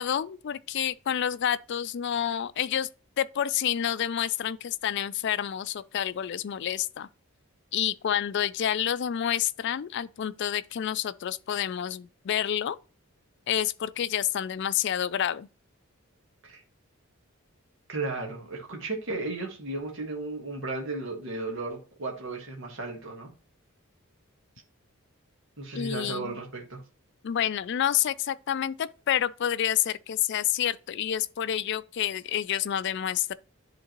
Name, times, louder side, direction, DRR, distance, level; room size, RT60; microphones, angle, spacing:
voice 1, 0.0-2.9 3.2-7.1 7.7-12.8 13.5-15.5 25.7-26.4 27.2-33.3, left 10 dB, 55° left, 0.3 m, -28 dB
voice 2, 17.9-23.3 25.6-26.8, right 3 dB, 60° right, 1.5 m, -34 dB
10.5 x 3.7 x 2.9 m
head